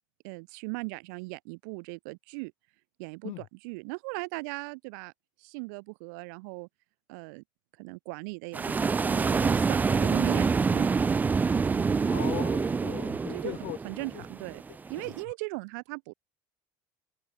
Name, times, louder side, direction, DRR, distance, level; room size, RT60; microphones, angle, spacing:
voice 1, 0.2-2.5 3.0-5.1 5.4-6.7 7.1-7.4 7.8-10.9 11.7-12.0 13.3-13.5 13.8-14.6 14.9-16.1, right 32 dB, 80° right, 1.6 m, -38 dB
sound 1, 8.5-15.2, right 5 dB, 20° right, 0.4 m, -26 dB
voice 2, 12.1-14.2 15.0-15.1, left 27 dB, 70° left, 0.7 m, -39 dB
open air
supercardioid pair, 100°, 10 cm